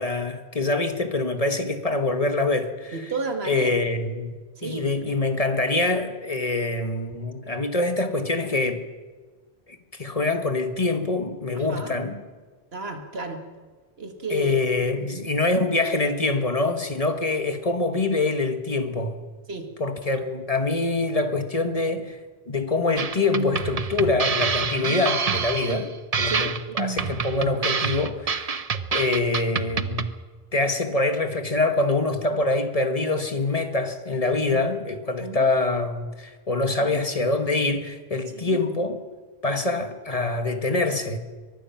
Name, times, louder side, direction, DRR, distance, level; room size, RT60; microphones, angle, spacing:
voice 1, 0.0-3.0 3.4-8.8 9.7-12.2 14.3-19.2 19.8-22.2 22.5-25.9 26.2-26.5 26.8-28.5 28.9-30.1 30.5-39.0 39.4-41.2, left 3 dB, 35° left, 7 dB, 1.7 m, -25 dB
voice 2, 2.9-3.8 4.6-5.2 11.6-12.0 12.7-13.4 14.0-14.5 14.9-15.3 19.5-19.7 24.8-25.0 25.7-25.9 26.3-26.9 34.5-34.7 35.2-35.5 36.8-37.0 38.3-38.6, right 3 dB, 75° right, 5 dB, 2.2 m, -33 dB
sound 1, 23.0-30.1, right 5 dB, 40° right, 0.8 m, -27 dB
23.5 x 19.5 x 5.9 m, 1.4 s
omnidirectional pair, 1.0 m